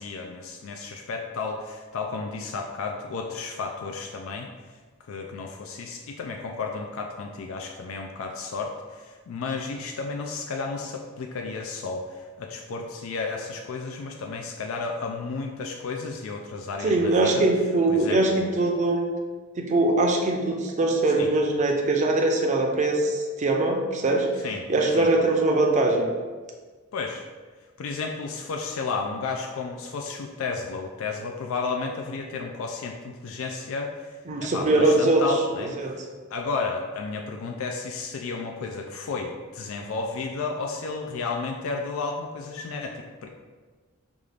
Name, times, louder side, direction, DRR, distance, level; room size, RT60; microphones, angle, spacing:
voice 1, 0.0-4.5 5.1-17.5 17.9-18.5 21.1-21.3 24.4-24.6 25.0-25.1 26.9-27.3 27.8-36.0 36.3-43.3, left 4 dB, 75° left, 2 dB, 0.4 m, -32 dB
voice 2, 16.8-19.1 19.6-24.3 24.7-26.1 34.3-35.2 35.6-36.0, right 2 dB, 35° right, 1 dB, 0.5 m, -22 dB
5.2 x 2.4 x 3.3 m, 1.4 s
head